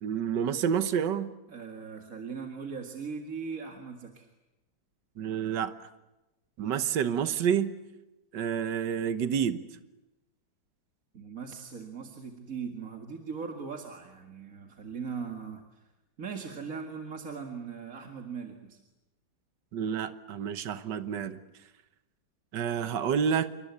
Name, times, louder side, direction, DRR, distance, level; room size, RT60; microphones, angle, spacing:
voice 1, 0.0-1.3 5.2-5.7 6.6-7.7 8.3-9.6 19.7-21.4 22.5-23.5, right 8 dB, 70° right, 1.8 m, -29 dB
voice 2, 1.5-4.3 11.1-15.9 16.2-18.8, right 5 dB, 45° right, 2.4 m, -39 dB
27.5 x 24.0 x 8.4 m
omnidirectional pair, 2.1 m